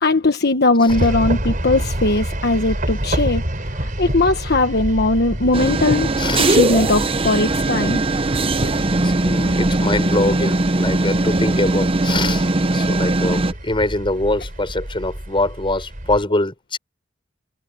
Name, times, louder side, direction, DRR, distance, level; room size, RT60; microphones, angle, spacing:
voice 1, 0.0-3.4 3.7-6.1 6.4-8.0, left 2 dB, 60° left, 1.3 m, -19 dB
sound 1, 0.9-16.2, right 1 dB, 45° right, 4.7 m, -28 dB
sound 2, 5.5-13.5, right 2 dB, 30° right, 0.8 m, -20 dB
voice 2, 6.2-6.6 8.6-16.8, left 2 dB, 30° left, 6.8 m, -24 dB
head